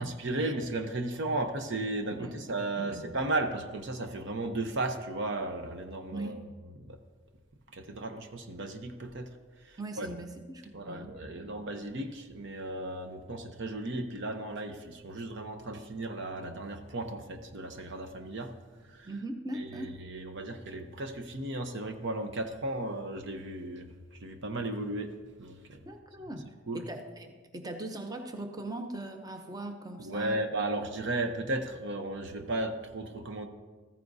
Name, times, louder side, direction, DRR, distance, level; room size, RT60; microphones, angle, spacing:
voice 1, 0.0-6.4 6.8-7.0 7.7-9.3 9.6-10.1 10.7-18.5 18.8-19.1 19.5-23.9 24.2-25.1 25.4-25.9 26.7-26.8 30.0-33.5, right 2 dB, 60° right, 6 dB, 0.9 m, -35 dB
voice 2, 9.8-11.6 19.1-19.9 25.9-30.4, right 2 dB, 20° right, 5 dB, 0.7 m, -40 dB
14.0 x 14.0 x 2.7 m, 1.4 s
head